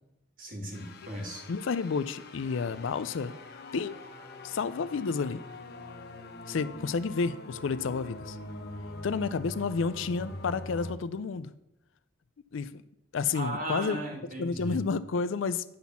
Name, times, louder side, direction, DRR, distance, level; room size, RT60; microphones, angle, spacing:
voice 1, 0.4-1.4 13.3-14.8, right 1 dB, 40° right, 0 dB, 2.1 m, -36 dB
sound 1, 0.7-10.9, left 2 dB, 50° left, 0.8 m, -43 dB
voice 2, 1.5-3.3 3.7-4.0 4.4-5.4 6.5-8.4 9.0-11.5 12.5-12.8 13.1-14.0 14.4-15.6, left 5 dB, 70° left, 15 dB, 0.4 m, -30 dB
10.0 x 4.1 x 7.0 m, 0.86 s
head